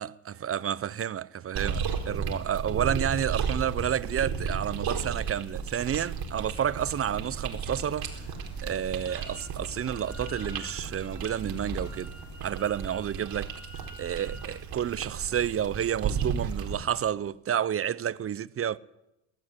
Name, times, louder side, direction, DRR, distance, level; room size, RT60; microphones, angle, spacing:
voice 1, 0.0-8.3 8.6-12.1 12.4-13.5 14.0-18.8, right 9 dB, 30° right, 0.7 m, -30 dB
sound 1, 1.5-16.8, right 6 dB, 50° right, 4.4 m, -34 dB
sound 2, 6.6-12.8, left 1 dB, 20° left, 5.4 m, -44 dB
Wind instrument woodwind instrument, 9.1-9.5 9.7-14.6, left 1 dB, 5° right, 4.0 m, -50 dB
21.0 x 14.0 x 9.9 m
cardioid pair, 110°, 47 cm